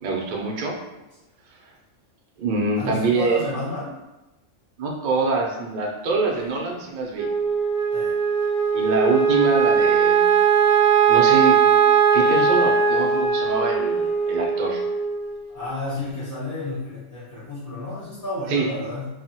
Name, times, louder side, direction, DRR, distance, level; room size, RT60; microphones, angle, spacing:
voice 1, 0.0-0.7 2.4-3.5 4.8-7.3 8.7-10.3 11.1-11.5 12.1-14.8 18.5-18.7, right 3 dB, 65° right, -1 dB, 0.4 m, -24 dB
voice 2, 2.7-3.9 7.9-8.2 15.5-19.1, left 2 dB, 15° left, -10 dB, 1.1 m, -31 dB
Wind instrument woodwind instrument, 7.1-15.6, right 6 dB, 90° right, 1.0 m, -19 dB
3.1 x 2.1 x 2.7 m, 1.0 s
omnidirectional pair, 1.4 m